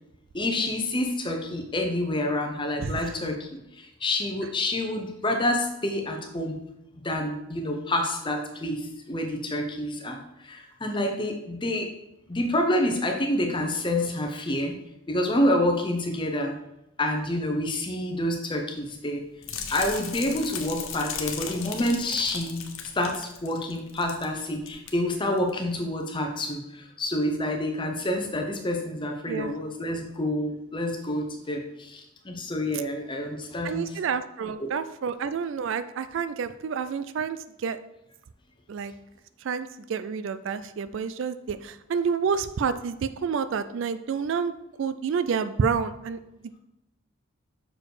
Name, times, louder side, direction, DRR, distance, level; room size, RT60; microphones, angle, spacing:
voice 1, 0.3-6.6 7.0-11.9 12.3-14.8 15.1-16.6 17.0-19.2 19.7-22.6 22.9-34.0 34.6-34.7, left 1 dB, 20° left, 3 dB, 0.8 m, -28 dB
sound 1, 19.4-24.3 24.5-24.9 25.4-25.5, left 7 dB, 65° left, 0.9 m, -36 dB
voice 2, 33.6-37.8 38.7-38.9 39.4-44.5 44.8-46.2, right 6 dB, 55° right, 13 dB, 0.3 m, -29 dB
6.3 x 4.7 x 4.8 m, 0.86 s
head